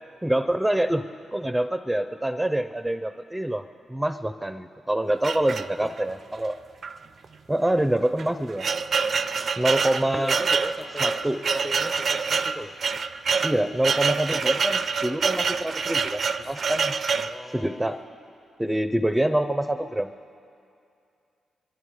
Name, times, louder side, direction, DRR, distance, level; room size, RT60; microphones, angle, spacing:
voice 1, 0.2-6.6 7.5-8.7 9.6-10.4 11.0-11.5 13.4-16.9 17.5-18.0 18.6-20.1, right 1 dB, 10° right, 7 dB, 0.6 m, -26 dB
sound 1, 5.2-6.1 6.8-7.0 7.2-7.3 8.0-17.4, right 5 dB, 60° right, 0.4 m, -26 dB
voice 2, 9.9-12.7 16.4-16.6 17.1-18.0, left 1 dB, 20° left, 8 dB, 0.9 m, -37 dB
23.0 x 11.0 x 4.8 m, 2.5 s
hypercardioid pair, 40°, 0 cm